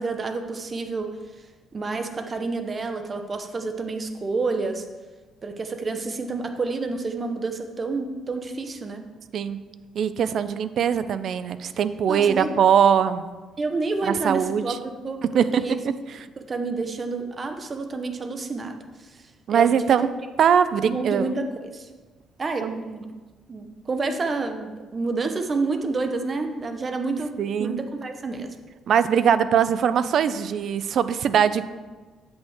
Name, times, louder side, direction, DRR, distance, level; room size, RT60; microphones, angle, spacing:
voice 1, 0.0-4.8 5.4-9.1 12.1-12.6 13.6-15.8 16.4-19.9 20.8-21.9 22.4-23.1 23.5-27.3 27.6-28.6, right 3 dB, 30° right, 6 dB, 0.7 m, -29 dB
voice 2, 10.0-13.3 14.1-14.8 15.2-15.6 19.5-20.1 20.4-21.3 22.6-22.8 27.4-27.8 28.9-31.6, right 8 dB, 55° right, 13 dB, 0.4 m, -21 dB
8.1 x 7.9 x 3.5 m, 1.3 s
cardioid pair, 140°, 0 cm